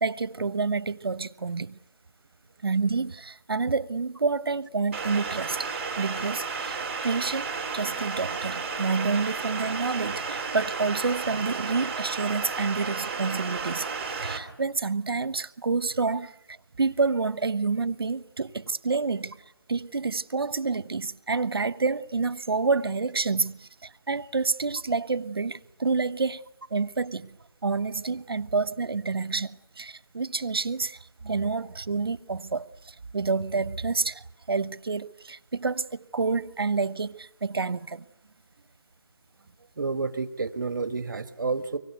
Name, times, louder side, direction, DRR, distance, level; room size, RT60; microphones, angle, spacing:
voice 1, 0.0-1.8 2.6-5.7 6.0-19.4 19.7-26.4 26.7-27.4 27.6-38.0, right 4 dB, 75° right, 1.1 m, -28 dB
sound 1, 4.9-14.4, right 4 dB, 30° right, 3.1 m, -33 dB
voice 2, 39.8-41.8, right 4 dB, 55° right, 1.6 m, -30 dB
25.0 x 23.5 x 8.1 m
figure-of-eight pair, 170°, 13 cm